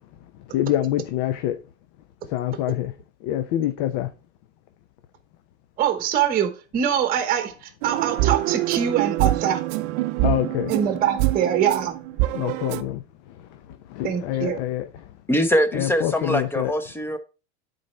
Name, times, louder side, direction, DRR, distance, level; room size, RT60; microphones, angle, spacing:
voice 1, 0.5-1.6 2.3-2.9 3.2-4.1 10.2-10.7 12.3-13.0 14.0-14.9 15.7-16.7, left 12 dB, 55° left, 0.7 m, -25 dB
voice 2, 5.8-9.6 10.7-12.0 14.0-14.6, right 9 dB, 25° right, 1.1 m, -23 dB
sound 1, 7.8-12.8, right 17 dB, 55° right, 0.6 m, -25 dB
voice 3, 15.3-17.2, equal, 5° left, 0.8 m, -22 dB
9.7 x 4.2 x 4.4 m
supercardioid pair, 130°, 33 cm